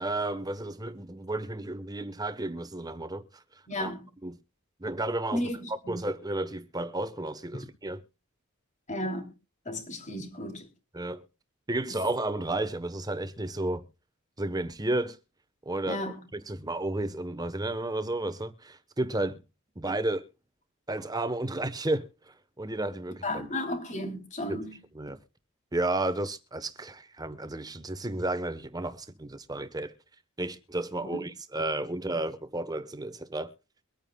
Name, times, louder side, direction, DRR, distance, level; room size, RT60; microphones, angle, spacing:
voice 1, 0.0-3.2 3.8-3.9 4.2-4.4 4.8-5.4 5.9-8.0 10.9-11.2 11.7-13.8 14.4-15.2 15.7-19.4 19.8-20.2 20.9-22.1 22.6-23.4 24.5-24.6 24.9-25.2 25.7-29.9 30.4-33.5, right 2 dB, 20° right, 1.1 m, -32 dB
voice 2, 3.7-4.0 5.3-6.0 8.9-9.3 9.6-10.7 15.8-16.2 23.2-24.8 31.1-31.3, left 1 dB, 35° left, 3.1 m, -34 dB
23.5 x 9.0 x 2.3 m
head